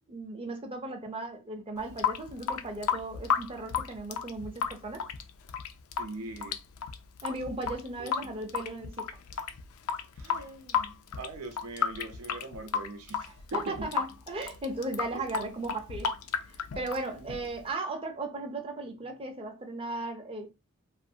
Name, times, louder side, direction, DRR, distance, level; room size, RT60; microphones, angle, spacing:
voice 1, 0.1-5.1 7.2-9.2 13.2-16.1 16.5-20.5, right 2 dB, 25° right, 0.5 m, -37 dB
Water tap faucet / Sink (filling or washing) / Drip, 1.8-17.7, left 7 dB, 80° left, 0.4 m, -34 dB
voice 2, 6.0-6.6 8.0-8.3 10.2-13.9 15.1-15.2, right 2 dB, 85° right, 0.6 m, -42 dB
2.5 x 2.5 x 2.6 m
head